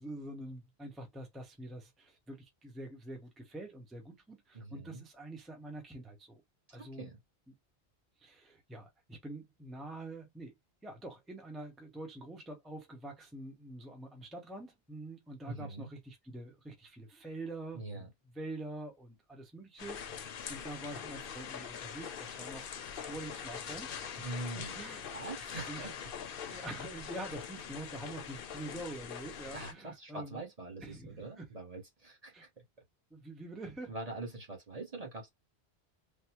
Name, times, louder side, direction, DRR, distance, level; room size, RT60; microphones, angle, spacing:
voice 1, 0.0-6.4 6.7-7.1 7.5-7.6 8.2-10.5 10.8-18.1 18.3-24.2 24.5-25.2 25.7-25.9 26.5-30.4 30.8-31.5 32.3-32.5 33.1-33.9, right 2 dB, ahead, 0.7 m, -46 dB
voice 2, 4.5-5.0 6.8-7.2 15.5-15.9 17.7-18.1 24.2-25.9 29.5-32.6 33.9-35.3, right 2 dB, 35° right, 1.1 m, -43 dB
sound 1, 19.8-29.7, left 7 dB, 60° left, 0.8 m, -43 dB
3.5 x 2.1 x 2.9 m
omnidirectional pair, 1.1 m